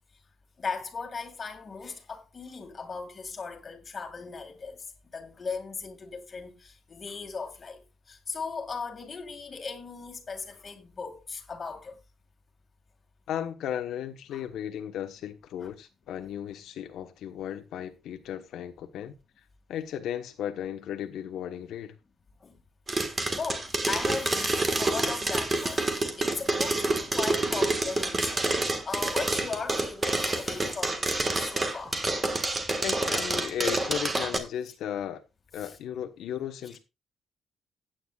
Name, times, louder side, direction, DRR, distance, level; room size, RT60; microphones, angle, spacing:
voice 1, 0.6-12.0 14.3-14.4 22.4-22.6 22.9-23.0 23.3-32.0 32.9-33.1 35.6-35.7 36.7-36.8, left 4 dB, 25° left, 2.1 m, -38 dB
voice 2, 13.3-19.2 19.7-21.9 32.8-35.2 35.5-36.8, left 10 dB, 75° left, 1.1 m, -35 dB
sound 1, 22.9-34.4, right 2 dB, 20° right, 1.5 m, -28 dB
16.0 x 9.1 x 2.4 m
cardioid pair, 165°, 0 cm